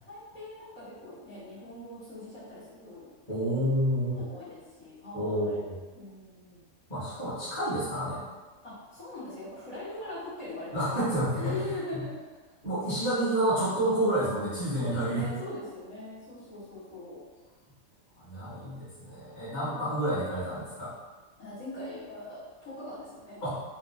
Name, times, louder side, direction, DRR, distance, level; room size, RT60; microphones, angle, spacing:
voice 1, 0.0-3.1 4.2-5.6 6.0-6.6 8.6-11.0 11.4-12.1 14.8-17.2 18.5-18.7 19.5-19.9 21.4-23.4, left 1 dB, 70° left, -11 dB, 1.8 m, -41 dB
voice 2, 3.3-4.2 5.1-5.8 6.9-8.2 10.7-12.0 12.6-15.4 18.2-20.9 23.4-23.6, right 1 dB, 30° left, -12 dB, 1.6 m, -29 dB
3.5 x 2.5 x 3.3 m, 1.3 s
omnidirectional pair, 1.5 m